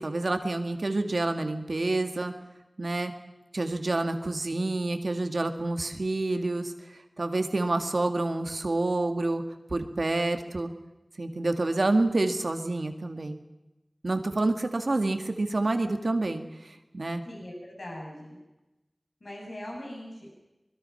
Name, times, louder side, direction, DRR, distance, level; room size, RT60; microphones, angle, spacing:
voice 1, 0.0-2.3 2.8-3.1 3.5-9.4 9.7-10.7 11.2-13.4 14.0-17.2, right 2 dB, 75° right, 6 dB, 2.0 m, -28 dB
voice 2, 17.3-18.4 19.2-20.4, left 1 dB, 75° left, -1 dB, 7.4 m, -41 dB
24.5 x 21.5 x 5.8 m, 1.0 s
wide cardioid pair, 40°, 0 cm